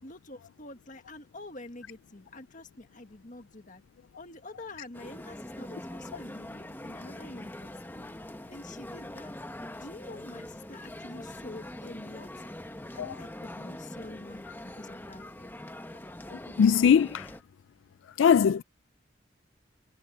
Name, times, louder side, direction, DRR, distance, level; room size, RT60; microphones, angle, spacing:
voice 1, 0.0-3.8 4.1-8.1 8.5-9.3 9.8-12.3 12.9-15.5, left 2 dB, 45° left, 1.7 m, -47 dB
sound 1, 4.9-17.4, left 1 dB, 10° left, 0.9 m, -43 dB
voice 2, 16.6-17.3 18.2-18.6, left 7 dB, 80° left, 0.3 m, -21 dB
head